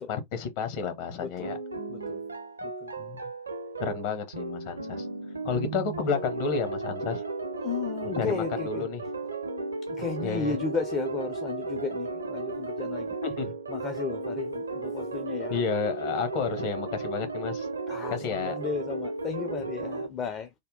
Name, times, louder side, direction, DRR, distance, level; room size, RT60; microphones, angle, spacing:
voice 1, 0.0-1.6 3.0-3.2 3.8-5.1 5.4-7.2 8.1-9.0 10.2-10.6 13.2-13.5 15.5-17.7 18.1-18.6, left 6 dB, 50° left, 1.1 m, -31 dB
voice 2, 1.2-1.6 1.9-2.2 2.6-2.9 7.6-8.9 9.9-13.2 13.7-15.6 17.9-20.5, left 5 dB, 30° left, 0.5 m, -34 dB
sound 1, 1.4-20.1, right 3 dB, 80° right, 0.6 m, -34 dB
3.5 x 2.3 x 3.7 m
figure-of-eight pair, 90°, 0 cm